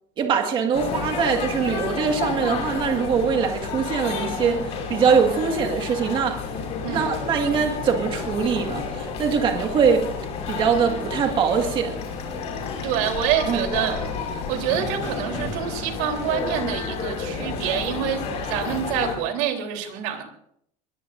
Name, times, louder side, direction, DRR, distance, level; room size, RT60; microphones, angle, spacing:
voice 1, 0.2-6.4 6.9-10.1 10.5-12.0 13.4-13.9, right 6 dB, 30° right, 3 dB, 1.9 m, -22 dB
sound 1, 0.7-19.2, left 5 dB, 40° left, 5.7 m, -30 dB
voice 2, 6.8-7.1 12.8-14.0 14.5-20.2, right 9 dB, 70° right, 3 dB, 3.7 m, -26 dB
22.5 x 22.5 x 2.7 m, 0.71 s
cardioid pair, 175°, 17 cm